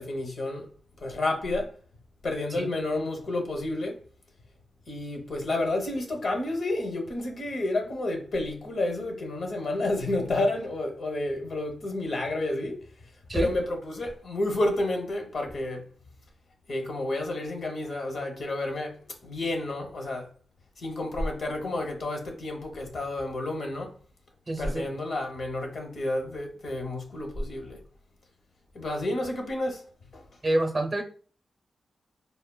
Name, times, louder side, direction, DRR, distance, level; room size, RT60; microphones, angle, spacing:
voice 1, 0.0-1.8 2.2-4.0 4.9-12.9 13.3-15.9 16.7-20.3 20.8-23.9 24.6-27.8 28.7-30.2, left 2 dB, 70° left, 0.8 m, -30 dB
voice 2, 24.5-24.8 30.4-31.0, right 1 dB, 40° right, 0.5 m, -27 dB
3.5 x 2.1 x 2.2 m
cardioid pair, 70°, 0 cm